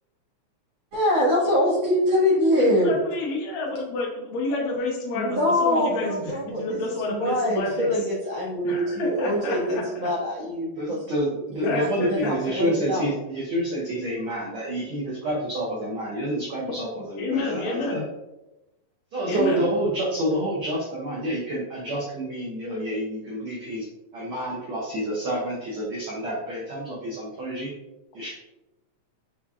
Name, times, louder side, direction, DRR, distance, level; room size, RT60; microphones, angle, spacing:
voice 1, 0.9-2.9 5.1-6.8 7.1-11.0 11.5-13.1, left 1 dB, 60° right, -8 dB, 2.6 m, -24 dB
voice 2, 2.6-7.9 8.6-10.1 11.6-12.3 17.2-18.1 19.3-19.7, left 2 dB, 70° left, -4 dB, 2.0 m, -29 dB
voice 3, 10.8-18.0 19.1-23.8 24.1-27.7 28.1-28.3, right 1 dB, 80° right, -5 dB, 1.2 m, -28 dB
6.0 x 3.7 x 2.3 m, 0.98 s
omnidirectional pair, 3.5 m